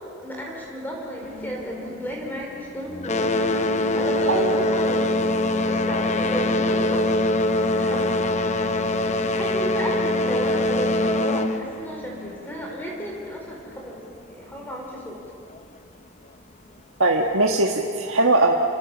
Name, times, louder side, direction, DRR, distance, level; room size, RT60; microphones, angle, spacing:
voice 1, 0.2-3.4 3.9-5.2 5.6-7.1 7.5-8.2 9.3-14.0 14.3-15.2, equal, 10° left, -2 dB, 4.6 m, -33 dB
sound 1, 1.2-2.6 2.9-13.2 14.1-14.2 14.8-14.9 15.6-15.7, left 1 dB, 30° left, 0.9 m, -24 dB
voice 2, 4.3-4.6 17.0-18.6, right 2 dB, 60° right, 0 dB, 1.6 m, -20 dB
29.0 x 28.0 x 7.4 m, 2.5 s
head